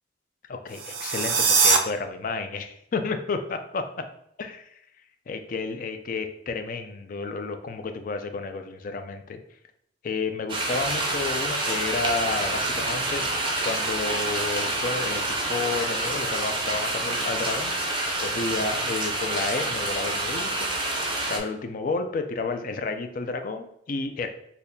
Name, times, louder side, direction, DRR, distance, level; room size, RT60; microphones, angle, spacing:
voice 1, 0.5-3.8 4.4-4.6 5.3-9.4 10.0-20.7 21.3-24.3, left 3 dB, 45° left, 7 dB, 0.3 m, -31 dB
sound 1, 0.7-1.8, right 5 dB, 85° right, 0.5 m, -21 dB
sound 2, 10.5-21.4, right 2 dB, 25° right, 0.5 m, -27 dB
3.9 x 2.7 x 2.6 m, 0.73 s
head